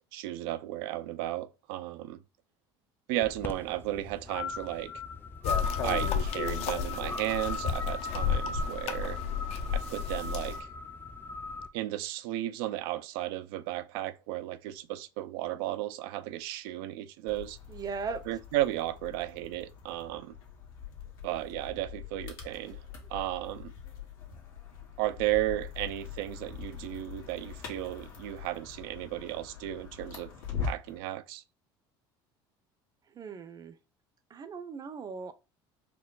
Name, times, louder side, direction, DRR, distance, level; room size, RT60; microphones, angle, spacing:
voice 1, 0.1-2.2 3.1-4.9 5.8-9.2 9.7-10.7 11.7-17.6 18.3-20.4 21.2-22.8 23.1-23.7 25.0-30.3 30.6-31.4, right 15 dB, 80° right, 0.4 m, -34 dB
sound 1, 3.2-11.7, left 3 dB, 15° left, 0.5 m, -38 dB
sound 2, 5.4-10.6, left 7 dB, 60° left, 0.7 m, -32 dB
sound 3, 17.3-31.0, left 6 dB, 85° left, 1.3 m, -43 dB
voice 2, 17.7-18.2 33.1-33.8 34.3-35.3, right 5 dB, 35° right, 0.6 m, -38 dB
4.5 x 2.1 x 3.8 m
supercardioid pair, 90°, 12 cm